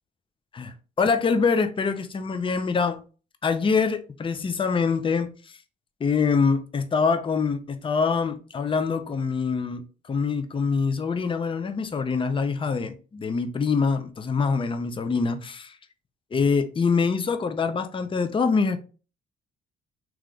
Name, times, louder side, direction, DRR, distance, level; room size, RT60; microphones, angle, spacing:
voice 1, 0.5-3.0 3.4-5.3 6.0-9.8 10.1-15.8 16.3-18.8, left 5 dB, 25° left, 0.5 m, -24 dB
3.2 x 3.0 x 3.7 m
cardioid pair, 90°, 20 cm